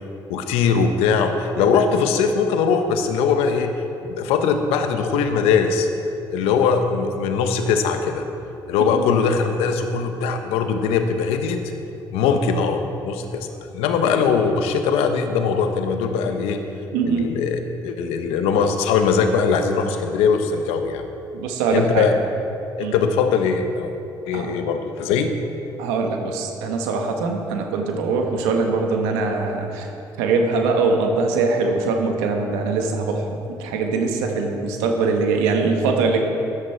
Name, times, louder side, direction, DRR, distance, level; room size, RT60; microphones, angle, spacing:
voice 1, 0.3-3.7 4.1-5.9 6.3-8.3 8.7-11.6 12.1-13.5 13.7-16.6 17.1-21.0 21.7-22.2 22.8-23.9 24.3-25.3, left 5 dB, 85° left, 6 dB, 1.0 m, -21 dB
voice 2, 16.9-17.3 21.3-22.1 22.8-22.9 24.3-24.6 25.8-29.9 30.2-36.2, right 4 dB, 90° right, 3 dB, 1.4 m, -22 dB
14.0 x 10.5 x 4.5 m, 2.8 s
supercardioid pair, 55°, 10 cm